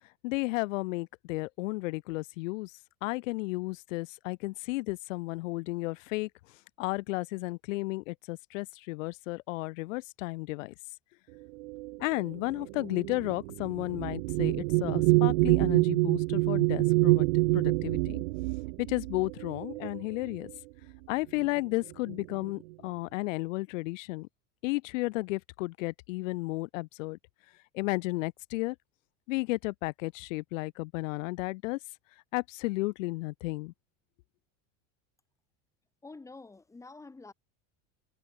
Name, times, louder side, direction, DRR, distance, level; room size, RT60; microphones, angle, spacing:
voice 1, 0.2-2.7 3.0-6.3 6.8-10.7 12.0-17.3 17.5-18.2 18.8-20.5 21.1-24.3 24.6-27.2 27.7-28.8 29.3-31.8 32.3-33.7, left 22 dB, 75° left, 1.2 m, -33 dB
sound 1, 11.6-20.5 21.4-21.6 21.9-22.5, right 24 dB, 65° right, 0.9 m, -27 dB
voice 2, 36.0-37.3, left 3 dB, 10° left, 5.8 m, -48 dB
cardioid pair, 180°, 39 cm